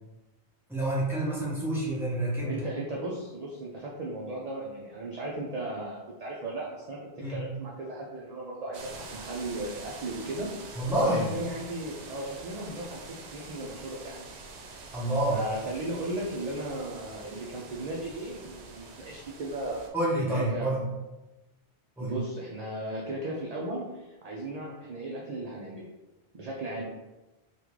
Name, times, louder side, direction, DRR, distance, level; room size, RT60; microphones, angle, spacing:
voice 1, 0.7-2.6 7.2-7.5 10.8-11.3 14.9-15.4 19.9-20.8 22.0-22.2, right 1 dB, ahead, -7 dB, 1.0 m, -28 dB
voice 2, 2.4-7.0 7.3-10.5 11.0-13.0 13.3-14.3 15.3-19.8 20.2-20.7 22.0-25.9 26.3-26.8, right 1 dB, 50° right, -3 dB, 0.5 m, -36 dB
sound 1, 8.7-19.9, right 3 dB, 85° right, 0.8 m, -45 dB
3.5 x 2.4 x 3.1 m, 1.1 s
omnidirectional pair, 1.1 m